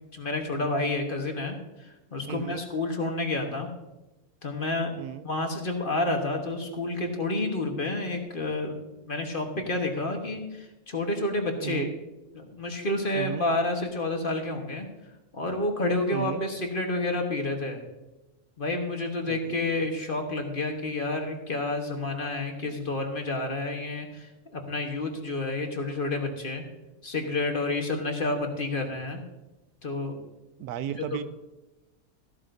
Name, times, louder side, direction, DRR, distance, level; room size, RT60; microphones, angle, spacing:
voice 1, 0.1-3.7 4.4-4.9 5.2-11.9 12.3-14.9 15.3-17.8 18.6-26.6 27.0-29.2 29.8-30.2, left 2 dB, 40° left, 3 dB, 1.3 m, -29 dB
voice 2, 2.3-2.6 5.0-5.3 11.6-11.9 13.1-13.5 16.1-16.4 19.2-19.7 30.6-31.2, right 10 dB, 80° right, 13 dB, 1.1 m, -35 dB
13.5 x 12.0 x 2.6 m, 1.0 s
omnidirectional pair, 1.6 m